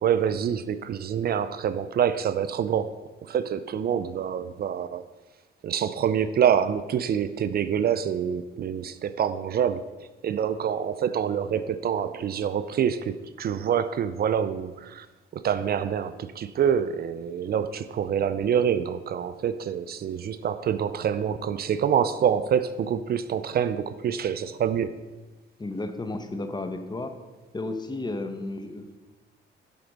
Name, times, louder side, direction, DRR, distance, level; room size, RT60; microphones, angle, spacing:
voice 1, 0.0-5.0 5.6-9.9 10.2-15.1 15.3-25.0, right 8 dB, 50° right, 13 dB, 0.4 m, -26 dB
voice 2, 25.6-27.1 27.5-29.0, left 2 dB, 20° left, 7 dB, 0.9 m, -33 dB
11.0 x 4.4 x 5.2 m, 1.2 s
cardioid pair, 90°, 20 cm